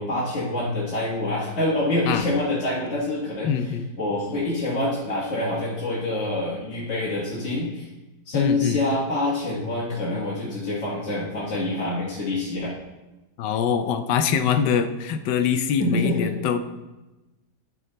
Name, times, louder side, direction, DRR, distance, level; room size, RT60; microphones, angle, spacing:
voice 1, 0.0-3.5 4.0-7.8 8.2-12.7 15.8-16.3, left 2 dB, 40° left, -7 dB, 1.7 m, -26 dB
voice 2, 3.4-3.9 8.3-8.8 13.4-16.6, left 7 dB, 75° left, 9 dB, 1.2 m, -23 dB
12.0 x 4.3 x 3.9 m, 1.1 s
omnidirectional pair, 1.9 m